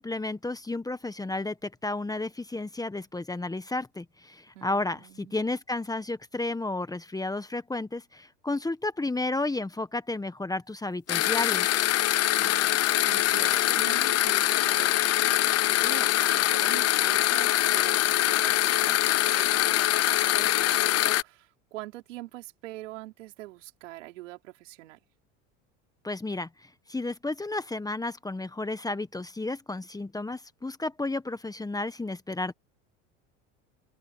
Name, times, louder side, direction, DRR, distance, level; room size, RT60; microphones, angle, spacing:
voice 1, 0.0-11.8 26.0-32.5, left 2 dB, 10° left, 1.3 m, -32 dB
voice 2, 4.5-5.5 12.3-25.0, right 17 dB, 85° right, 4.9 m, -44 dB
sound 1, 11.1-21.2, left 14 dB, 40° left, 0.9 m, -24 dB
open air
supercardioid pair, 95°, 36 cm